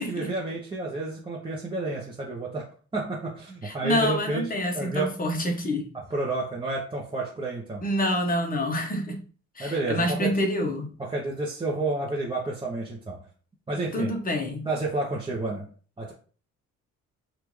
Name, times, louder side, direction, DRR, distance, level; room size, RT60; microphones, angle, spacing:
voice 1, 0.0-4.5 4.7-5.1 5.9-7.8 9.6-10.3 11.0-13.2 13.7-14.1 14.6-15.7 16.0-16.1, right 2 dB, 15° right, 0.8 m, -30 dB
voice 2, 3.6-5.9 7.8-9.2 9.6-10.9 13.9-14.7, left 1 dB, 30° left, 1.0 m, -27 dB
3.4 x 2.5 x 3.1 m
cardioid pair, 90°, 30 cm